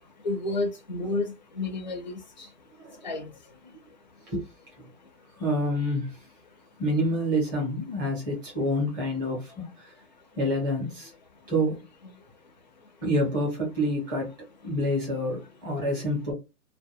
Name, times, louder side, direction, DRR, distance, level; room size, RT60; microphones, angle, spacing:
voice 1, 0.2-2.1 3.0-3.3, left 2 dB, 30° left, 0.4 m, -30 dB
voice 2, 5.4-6.1 6.8-9.7 10.4-11.1 11.5-11.8 13.0-14.3 14.6-16.3, equal, 15° right, 0.7 m, -27 dB
2.3 x 2.2 x 3.1 m
hypercardioid pair, 155°, 47 cm